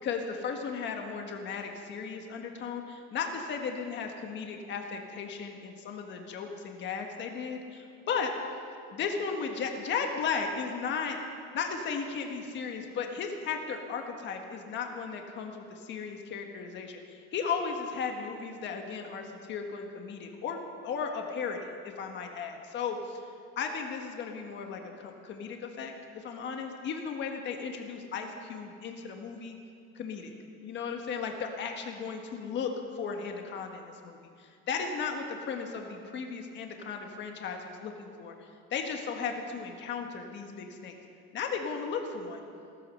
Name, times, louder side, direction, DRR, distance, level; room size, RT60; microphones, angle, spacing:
voice 1, 0.0-8.3 8.9-11.2 11.5-20.6 20.8-23.2 23.6-29.6 29.9-30.3 30.6-40.9 41.3-42.4, left 5 dB, 35° left, 3 dB, 1.5 m, -35 dB
15.5 x 14.5 x 6.4 m, 2.4 s
cardioid pair, 160°, 30 cm